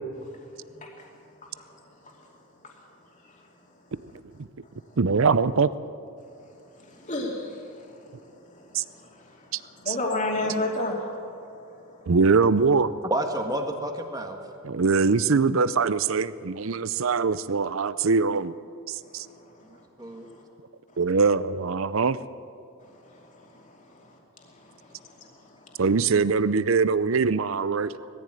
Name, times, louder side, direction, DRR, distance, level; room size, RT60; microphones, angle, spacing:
voice 1, 5.0-5.7 8.7-8.8 9.5-9.6 9.9-10.0 12.1-12.9 14.6-18.5 18.9-19.3 21.0-22.2 25.8-27.9, right 4 dB, 65° right, 16 dB, 0.6 m, -22 dB
voice 2, 6.9-7.9 8.5-8.6 8.9-9.2 9.8-11.0 23.1-23.5 25.0-25.3, left 2 dB, 35° left, -1 dB, 2.6 m, -30 dB
voice 3, 13.1-14.4 19.7-20.3 28.0-28.1, right 1 dB, 15° right, 4 dB, 1.6 m, -30 dB
20.0 x 14.5 x 9.1 m, 2.7 s
head